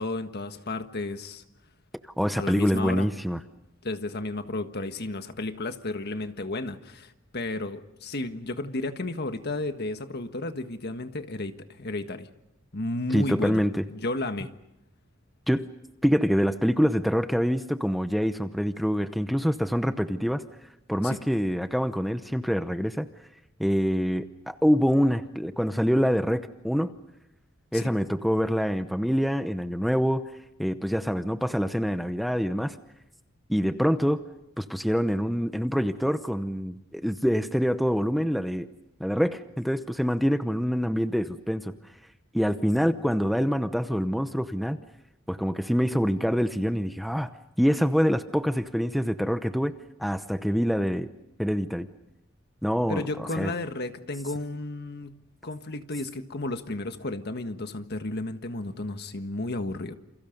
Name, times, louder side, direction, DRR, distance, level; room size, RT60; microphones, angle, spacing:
voice 1, 0.0-1.4 2.3-3.1 3.8-12.3 12.7-13.6 13.9-14.5 21.0-21.2 27.7-27.9 52.9-59.9, left 2 dB, 50° left, 8 dB, 1.6 m, -33 dB
voice 2, 2.2-3.4 13.1-13.8 15.5-15.7 16.0-20.4 20.9-23.1 23.6-26.9 27.7-30.2 30.6-32.8 33.5-34.2 34.6-38.7 39.0-41.7 42.3-44.8 45.3-47.3 47.6-49.7 50.0-51.1 51.4-51.9 52.6-53.5, equal, ahead, 9 dB, 0.8 m, -25 dB
29.0 x 28.0 x 5.3 m, 0.90 s
head